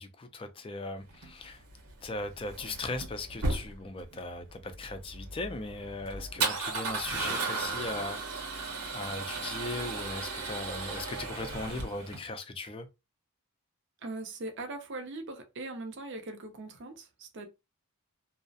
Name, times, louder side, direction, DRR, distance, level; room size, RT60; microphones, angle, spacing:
voice 1, 0.0-1.6 2.0-8.2 8.9-12.9, left 2 dB, 25° left, 0.3 m, -38 dB
Male speech man speaking / Car / Engine starting, 1.1-12.2, right 3 dB, 75° right, 0.9 m, -36 dB
voice 2, 14.0-17.5, right 2 dB, 55° right, 0.6 m, -40 dB
2.3 x 2.0 x 2.6 m
head